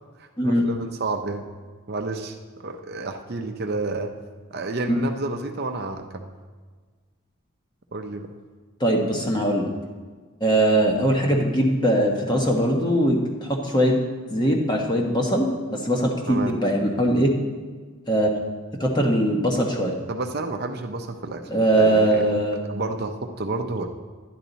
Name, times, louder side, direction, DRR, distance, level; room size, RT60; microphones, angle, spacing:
voice 1, 0.2-1.4 1.9-4.1 4.5-6.3 7.9-8.3 16.3-16.6 20.1-22.3 22.7-23.9, right 2 dB, 45° right, 5 dB, 0.6 m, -30 dB
voice 2, 8.8-9.7 10.4-14.0 14.3-17.3 18.1-18.3 18.8-19.9 21.5-22.6, right 1 dB, 20° left, 1 dB, 1.2 m, -21 dB
11.0 x 10.5 x 4.0 m, 1.5 s
head